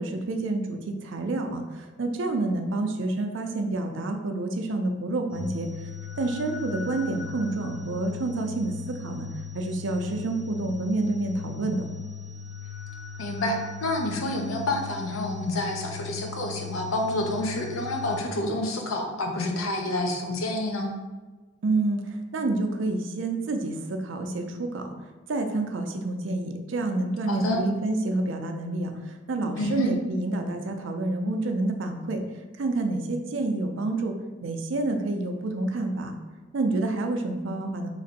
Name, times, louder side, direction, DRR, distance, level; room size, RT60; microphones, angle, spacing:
voice 1, 0.0-5.7 6.2-9.3 9.5-11.8 21.6-24.8 25.3-32.2 32.6-34.1 34.4-36.1 36.5-37.9, right 2 dB, 70° right, 5 dB, 0.4 m, -28 dB
sound 1, 5.3-18.2, left 7 dB, 10° right, 0.8 m, -39 dB
voice 2, 13.2-20.9 27.3-27.6 29.6-29.9, left 1 dB, 90° left, 2 dB, 0.6 m, -28 dB
3.2 x 2.5 x 3.9 m, 1.3 s
head